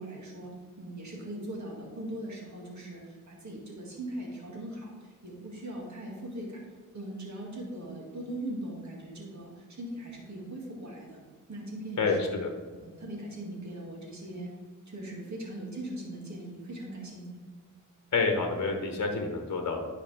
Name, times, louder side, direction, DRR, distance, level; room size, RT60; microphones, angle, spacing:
voice 1, 0.0-6.6 6.9-11.2 11.5-12.4 12.7-14.5 14.9-17.3, right 1 dB, 60° right, -2 dB, 2.4 m, -40 dB
voice 2, 12.0-12.5 18.1-19.9, left 4 dB, 55° left, 3 dB, 1.1 m, -28 dB
10.0 x 4.9 x 3.5 m, 1.5 s
wide cardioid pair, 75°, 33 cm